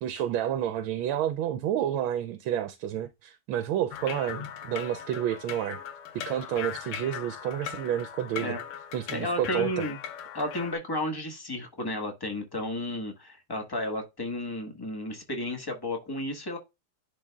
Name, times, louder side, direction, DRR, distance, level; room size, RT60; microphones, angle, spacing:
voice 1, 0.0-5.8 6.1-8.6 8.9-9.8, right 11 dB, 80° right, 1.4 m, -30 dB
sound 1, 3.9-10.7, left 9 dB, 80° left, 1.7 m, -39 dB
voice 2, 9.1-10.0 10.3-16.6, left 1 dB, 15° left, 0.9 m, -33 dB
10.5 x 3.9 x 2.3 m
omnidirectional pair, 2.3 m